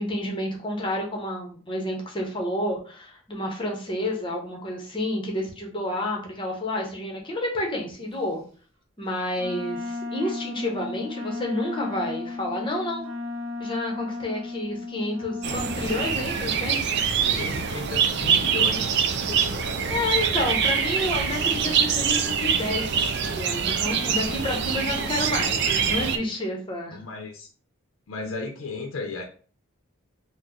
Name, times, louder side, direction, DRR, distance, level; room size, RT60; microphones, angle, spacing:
voice 1, 0.0-8.4 9.0-13.1 13.6-16.9 19.9-22.9 23.1-27.0, left 1 dB, 25° left, 0 dB, 0.8 m, -30 dB
Wind instrument woodwind instrument, 9.3-16.1, left 3 dB, 75° right, 0.8 m, -34 dB
sound 1, 15.4-26.2, right 7 dB, 55° right, 0.4 m, -24 dB
voice 2, 17.2-20.0 26.9-27.5 28.1-29.2, left 3 dB, 80° left, 3 dB, 0.5 m, -35 dB
4.1 x 2.0 x 3.0 m, 0.41 s
head